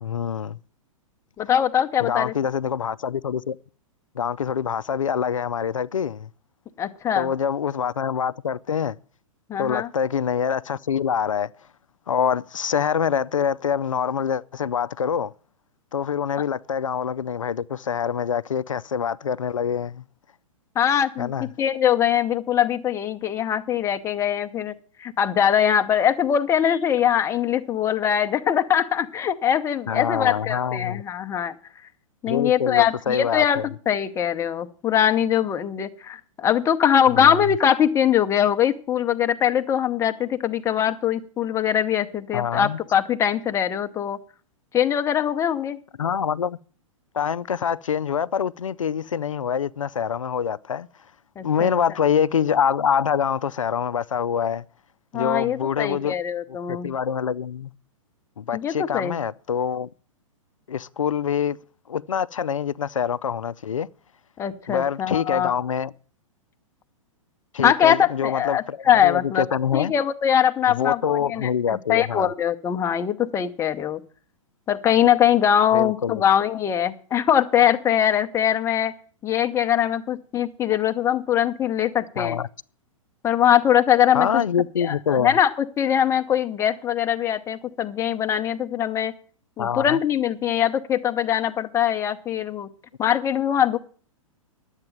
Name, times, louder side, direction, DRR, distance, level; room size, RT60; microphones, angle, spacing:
voice 1, 0.0-0.6 2.0-3.6 4.1-6.3 7.2-9.0 9.6-11.5 12.1-15.3 15.9-20.0 21.2-21.5 29.9-31.0 32.3-33.7 37.1-37.5 42.3-42.8 46.0-46.6 47.1-50.9 51.4-54.6 55.1-56.1 56.7-57.7 58.4-59.9 60.7-61.6 61.9-63.9 64.7-65.9 67.5-68.8 69.0-69.9 70.7-72.3 75.7-76.2 82.2-82.5 84.1-85.3 89.6-90.0, left 7 dB, 70° left, 0.5 m, -25 dB
voice 2, 1.4-2.3 6.8-7.3 9.5-9.9 20.7-24.7 25.0-31.5 32.2-44.2 44.7-45.8 51.4-51.7 55.1-56.9 58.5-59.1 64.4-65.5 67.6-74.0 74.7-78.9 79.2-82.4 83.2-84.4 84.8-89.1 89.6-92.7 93.0-93.8, left 9 dB, 15° left, 0.8 m, -22 dB
11.5 x 8.2 x 7.4 m
figure-of-eight pair, 110°, 17 cm